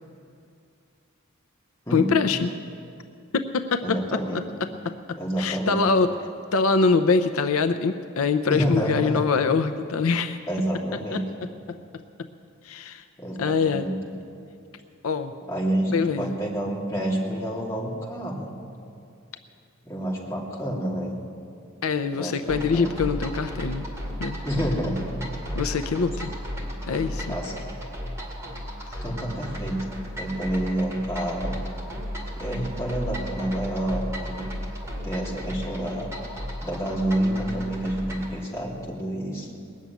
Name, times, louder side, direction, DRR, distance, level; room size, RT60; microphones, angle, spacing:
voice 1, 1.9-2.5 3.3-4.4 4.8-6.1 6.5-10.4 11.1-11.2 11.7-11.8 12.6-13.0 13.4-13.9 15.0-15.3 15.9-16.3 21.8-23.9 24.2-24.4 25.6-26.3 26.9-27.4, left 4 dB, 80° left, 9 dB, 0.6 m, -24 dB
voice 2, 3.8-4.4 5.2-5.8 8.5-9.2 10.5-11.2 13.2-13.9 15.5-18.5 19.8-21.1 22.1-22.9 24.4-25.0 27.3-27.5 29.0-29.8 30.2-31.6 32.3-34.5 35.0-36.1 36.6-39.5, right 1 dB, 15° left, -5 dB, 2.8 m, -28 dB
sound 1, 22.5-38.3, equal, 15° right, 2.3 m, -34 dB
20.0 x 7.3 x 9.2 m, 2.4 s
head